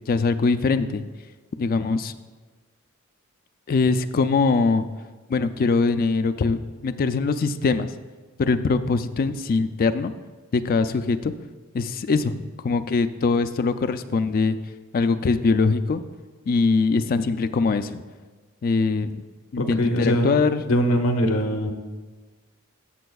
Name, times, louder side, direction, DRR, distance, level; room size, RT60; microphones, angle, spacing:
voice 1, 0.1-1.0 1.6-2.1 3.7-4.9 5.3-7.9 8.4-10.1 10.5-11.3 11.7-14.6 14.9-16.0 16.5-18.0 18.6-19.1 19.5-20.7, left 4 dB, 45° left, 10 dB, 0.4 m, -22 dB
voice 2, 19.6-20.3 20.7-21.7, equal, 85° left, 4 dB, 1.0 m, -22 dB
14.0 x 6.8 x 2.3 m, 1.3 s
head